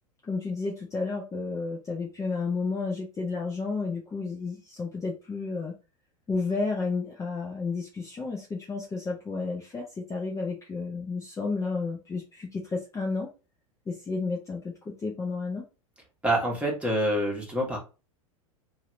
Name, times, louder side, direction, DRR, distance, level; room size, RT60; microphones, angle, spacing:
voice 1, 0.2-5.7 6.3-13.3 13.9-15.6, left 4 dB, 15° left, -1 dB, 0.7 m, -32 dB
voice 2, 16.2-17.8, right 1 dB, 5° right, -2 dB, 1.3 m, -26 dB
2.8 x 2.6 x 3.0 m, 0.31 s
figure-of-eight pair, 90°, 18 cm